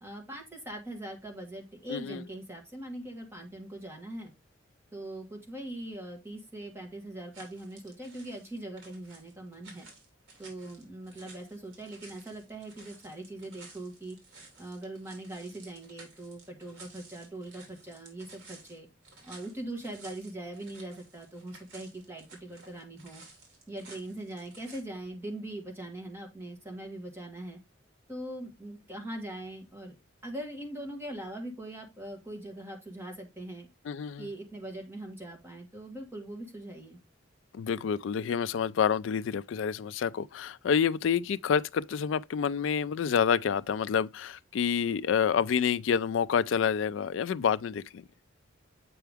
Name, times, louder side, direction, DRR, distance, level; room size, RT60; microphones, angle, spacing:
voice 1, 0.0-4.3 4.9-9.9 10.4-14.2 14.6-18.9 19.2-23.2 23.7-27.6 28.1-29.9 30.2-33.7 34.2-37.0, right 1 dB, 10° right, 1.7 m, -41 dB
sound 1, 7.3-24.8, right 3 dB, 75° right, 3.0 m, -54 dB
voice 2, 33.9-34.3 37.5-48.0, left 7 dB, 70° left, 0.3 m, -28 dB
7.8 x 4.6 x 3.4 m
head